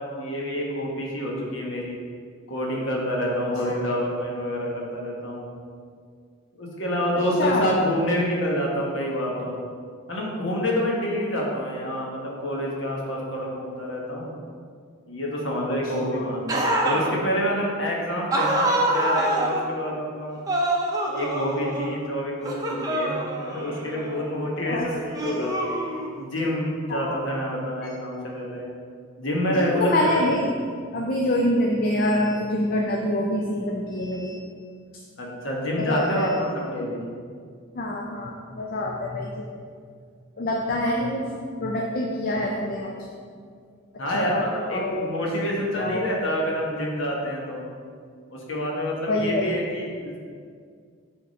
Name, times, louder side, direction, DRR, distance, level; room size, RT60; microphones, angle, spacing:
voice 1, 0.0-2.0 2.5-5.5 6.6-9.6 10.1-14.3 15.1-20.4 21.1-23.2 23.5-25.6 26.2-28.7 29.2-30.3 35.2-37.1 44.0-47.6 48.3-50.2, equal, 60° left, -2 dB, 1.3 m, -27 dB
voice 2, 7.4-7.7 16.1-16.3 24.6-25.5 26.9-27.3 27.8-27.9 29.5-30.5 30.9-34.4 35.8-36.3 37.7-39.3 40.4-41.2 41.6-42.9 44.1-45.1 45.5-46.1 49.1-49.6, left 1 dB, 40° left, -1 dB, 0.5 m, -26 dB
sound 1, 16.5-17.1 18.3-19.7 20.5-22.0 22.4-24.2 25.1-26.2, right 1 dB, 15° right, 0.6 m, -25 dB
6.8 x 3.7 x 5.3 m, 2.1 s
head